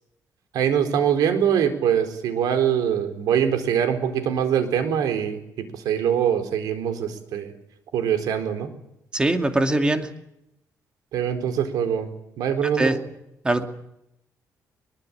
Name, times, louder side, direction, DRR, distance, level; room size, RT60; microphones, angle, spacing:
voice 1, 0.5-5.4 5.7-7.5 7.9-8.7 11.1-12.1 12.4-13.0, right 8 dB, 85° right, 8 dB, 4.4 m, -23 dB
voice 2, 9.1-10.1 12.6-13.0 13.4-13.6, right 2 dB, 15° right, 6 dB, 2.5 m, -22 dB
23.0 x 22.0 x 9.0 m, 0.81 s
cardioid pair, 145°, 6 cm